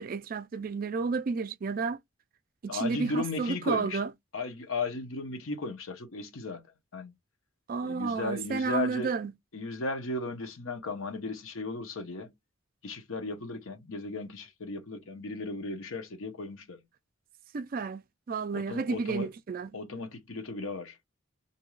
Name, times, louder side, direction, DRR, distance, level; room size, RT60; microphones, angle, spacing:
voice 1, 0.0-2.0 2.6-4.1 7.7-9.3 17.5-19.7, right 4 dB, 45° right, 0.3 m, -31 dB
voice 2, 2.7-4.0 4.3-6.7 6.9-7.1 7.8-9.1 9.5-12.3 12.8-16.8 18.5-19.3 19.7-21.0, left 3 dB, 80° left, 0.8 m, -36 dB
2.6 x 2.3 x 3.0 m
head